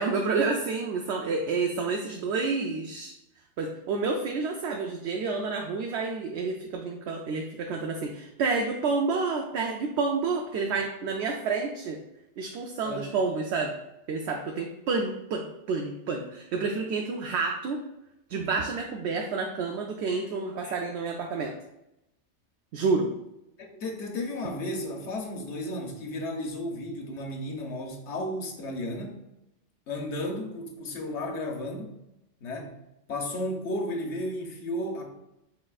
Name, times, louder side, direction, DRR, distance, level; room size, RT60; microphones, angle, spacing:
voice 1, 0.0-3.1 3.6-12.0 12.4-13.7 14.1-17.8 18.3-21.5 22.7-23.1, right 4 dB, 70° right, 2 dB, 0.8 m, -29 dB
voice 2, 23.7-29.2 29.9-31.9 32.4-32.8 33.1-35.0, left 1 dB, 75° left, 1 dB, 1.1 m, -33 dB
5.0 x 4.0 x 2.4 m, 0.87 s
omnidirectional pair, 1.2 m